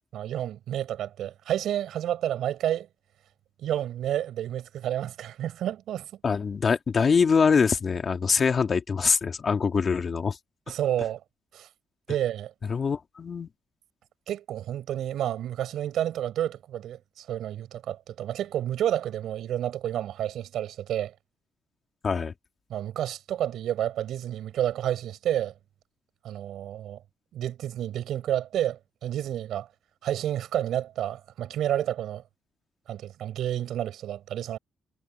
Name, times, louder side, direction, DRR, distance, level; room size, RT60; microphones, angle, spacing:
voice 1, 0.1-2.9 3.6-6.1 10.7-11.2 11.5-11.7 12.1-12.5 14.3-21.1 22.7-25.5 26.2-27.0 27.3-29.7 30.0-32.2 32.9-34.6, right 11 dB, 75° right, 6.2 m, -30 dB
voice 2, 6.2-10.4 12.7-13.5 22.0-22.3, left 5 dB, 40° left, 2.5 m, -24 dB
cardioid pair, 90°, 0 cm